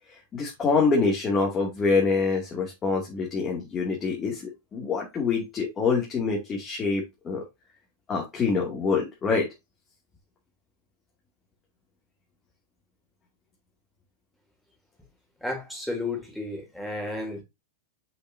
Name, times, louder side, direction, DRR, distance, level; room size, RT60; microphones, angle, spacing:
voice 1, 0.1-7.4 8.1-9.5, left 4 dB, 25° left, 2.5 m, -26 dB
voice 2, 15.4-17.4, left 2 dB, ahead, 3.3 m, -32 dB
6.3 x 6.0 x 2.7 m
hypercardioid pair, 120°, 0 cm